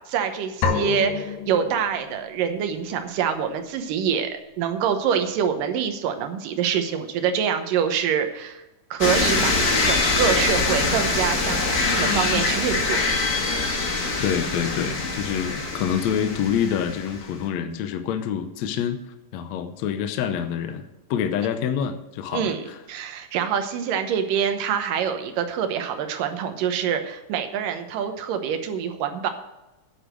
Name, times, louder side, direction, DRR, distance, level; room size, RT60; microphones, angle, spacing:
voice 1, 0.1-8.6 8.9-13.0 22.3-22.6 22.9-29.3, right 8 dB, 90° right, 7 dB, 2.7 m, -25 dB
sound 1, 0.6-2.4, left 5 dB, 90° left, 2.7 m, -28 dB
sound 2, 9.0-17.2, left 3 dB, 40° left, 1.4 m, -24 dB
voice 2, 14.2-19.0 19.3-20.8 21.1-22.8, left 8 dB, 70° left, 8 dB, 1.8 m, -26 dB
9.6 x 8.0 x 6.2 m, 1.0 s
omnidirectional pair, 3.7 m